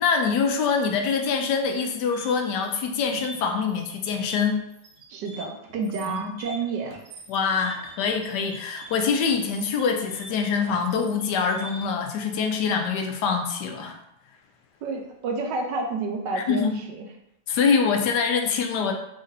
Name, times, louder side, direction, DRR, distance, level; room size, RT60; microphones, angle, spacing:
voice 1, 0.0-4.6 6.1-6.3 7.3-14.0 16.3-16.7 17.5-18.9, left 5 dB, 80° left, 4 dB, 1.2 m, -24 dB
sound 1, 0.8-12.1, right 2 dB, 55° right, 1.1 m, -45 dB
voice 2, 5.1-6.9 14.8-17.0, right 4 dB, 80° right, 2 dB, 1.3 m, -30 dB
4.1 x 2.6 x 3.9 m, 0.82 s
omnidirectional pair, 1.8 m